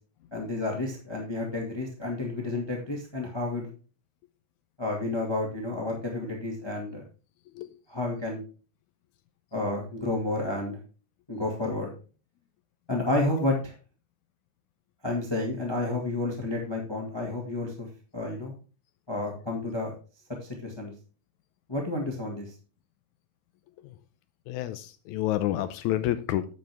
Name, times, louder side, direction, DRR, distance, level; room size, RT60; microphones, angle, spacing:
voice 1, 0.3-3.7 4.8-7.0 7.9-8.4 9.5-10.8 11.3-11.9 12.9-13.7 15.0-17.9 18.1-18.5 19.1-19.9 20.4-20.9 21.7-22.5, left 2 dB, 20° left, 0 dB, 0.6 m, -30 dB
voice 2, 24.5-26.5, left 13 dB, 90° left, 11 dB, 1.7 m, -29 dB
9.1 x 7.6 x 3.4 m, 0.36 s
omnidirectional pair, 4.0 m